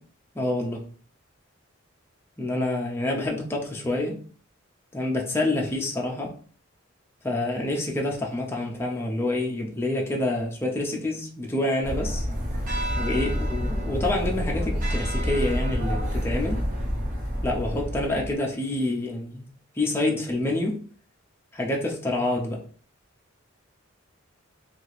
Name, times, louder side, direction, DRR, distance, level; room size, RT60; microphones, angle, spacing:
voice 1, 0.3-0.8 2.4-4.2 4.9-6.3 7.2-12.3 13.0-16.6 17.4-19.4 19.8-20.8 21.5-22.6, left 2 dB, 10° left, 0.4 m, -27 dB
sound 1, 11.8-18.3, equal, 40° right, 0.8 m, -28 dB
2.8 x 2.4 x 3.1 m
head